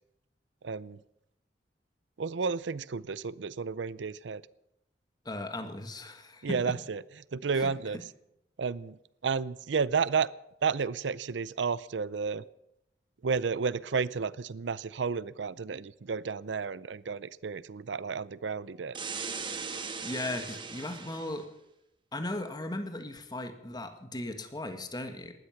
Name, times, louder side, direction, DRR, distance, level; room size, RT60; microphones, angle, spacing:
voice 1, 0.6-1.0 2.2-4.4 6.4-7.0 7.3-8.0 8.6-9.0 9.2-10.3 10.6-12.4 13.2-19.0, right 5 dB, 85° right, 19 dB, 0.6 m, -31 dB
voice 2, 5.2-6.7 7.5-7.7 20.0-21.5 22.1-25.3, left 1 dB, 25° left, 7 dB, 1.7 m, -37 dB
sound 1, 18.9-21.4, right 5 dB, 30° right, 1.4 m, -38 dB
19.0 x 12.5 x 5.8 m, 0.82 s
head